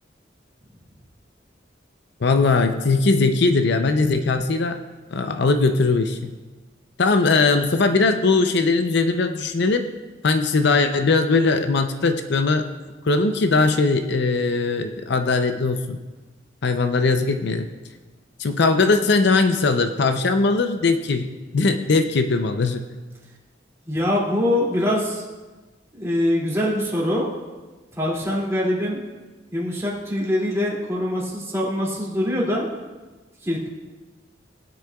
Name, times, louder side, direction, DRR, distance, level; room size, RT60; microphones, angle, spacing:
voice 1, 2.2-4.8 5.1-6.3 7.0-9.9 10.2-12.7 13.0-16.0 16.6-17.7 18.4-21.3 21.5-22.8, left 3 dB, 65° left, 7 dB, 0.6 m, -20 dB
voice 2, 23.9-25.2 25.9-27.3 27.9-29.0 29.5-32.7 33.4-33.7, left 1 dB, 15° right, -5 dB, 2.5 m, -23 dB
18.5 x 9.6 x 2.3 m, 1.2 s
head